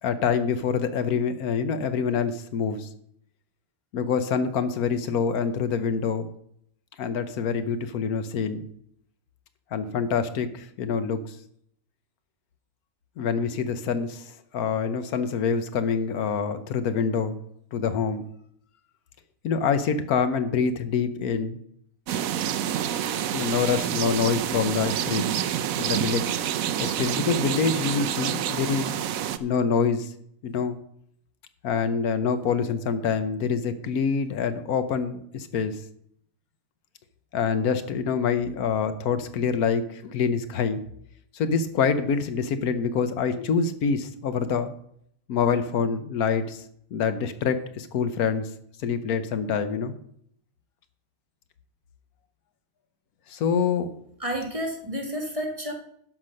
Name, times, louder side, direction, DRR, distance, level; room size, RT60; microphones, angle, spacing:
voice 1, 0.0-2.9 3.9-6.3 7.0-8.6 9.7-11.4 13.2-17.4 17.7-18.3 19.4-21.6 23.3-25.3 25.8-26.3 26.8-29.0 29.4-30.1 30.4-30.8 31.6-35.8 37.3-40.8 41.3-44.7 45.3-46.6 46.9-48.5 48.8-49.9 53.3-53.9, left 6 dB, 80° left, 11 dB, 1.3 m, -26 dB
sound 1, 22.1-29.4, right 10 dB, 70° right, 1.0 m, -28 dB
voice 2, 54.2-55.7, equal, 25° right, 1 dB, 1.8 m, -30 dB
11.0 x 6.0 x 6.4 m, 0.69 s
omnidirectional pair, 1.5 m